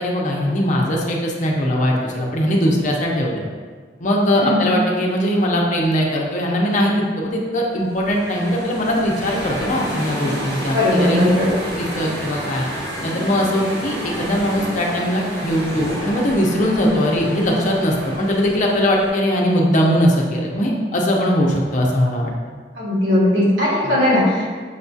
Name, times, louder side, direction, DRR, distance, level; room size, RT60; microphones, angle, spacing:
voice 1, 0.0-3.4 4.0-11.2 11.8-12.7 13.0-22.3 23.8-23.9, equal, 45° left, -2 dB, 0.6 m, -20 dB
sound 1, 7.8-19.1, equal, 70° right, 1.5 m, -30 dB
voice 2, 10.7-11.5 22.8-24.6, left 1 dB, 90° right, -7 dB, 1.5 m, -18 dB
6.4 x 2.3 x 2.6 m, 1.5 s
head